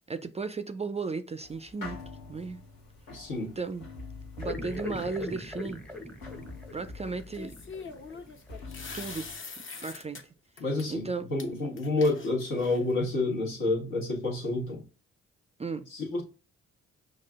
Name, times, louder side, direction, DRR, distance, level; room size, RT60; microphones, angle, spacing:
voice 1, 0.1-2.0 2.3-2.6 3.6-3.9 4.4-5.8 6.7-7.5 8.9-9.3 9.8-10.2 10.9-11.3 15.6-15.9, right 4 dB, 20° right, 0.4 m, -35 dB
sound 1, 1.4-9.3, left 3 dB, 85° left, 1.1 m, -46 dB
voice 2, 3.1-3.5 10.6-14.8 15.9-16.2, left 2 dB, 70° left, 1.5 m, -29 dB
sound 2, 4.4-8.6 8.9-9.0 11.1-11.2 11.6-11.7, left 1 dB, 5° left, 0.7 m, -41 dB
sound 3, 4.6-5.4 7.3-10.2 10.6-10.9 11.4-11.5 11.8-13.0, left 4 dB, 40° left, 0.8 m, -43 dB
5.8 x 2.4 x 2.4 m
hypercardioid pair, 45°, 33 cm